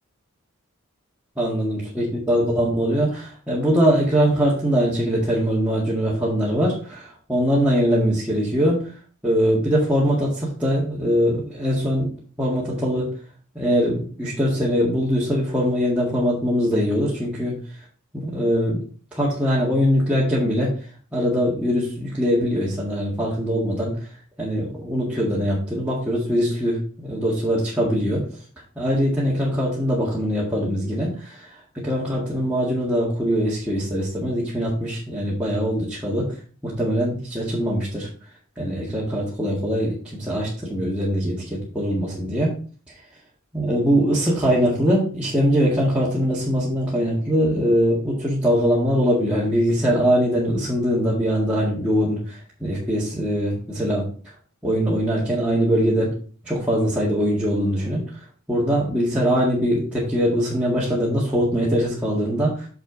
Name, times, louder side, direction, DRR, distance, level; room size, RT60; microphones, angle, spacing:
voice 1, 1.4-8.8 9.2-12.1 12.4-13.1 13.6-17.6 18.1-18.8 19.1-20.7 21.1-23.9 24.4-28.2 28.8-31.4 31.8-36.3 36.6-38.1 38.6-42.5 43.5-54.1 54.6-56.1 56.4-58.0 58.5-62.7, equal, 5° right, -8 dB, 1.9 m, -22 dB
6.7 x 6.4 x 3.9 m, 0.40 s
head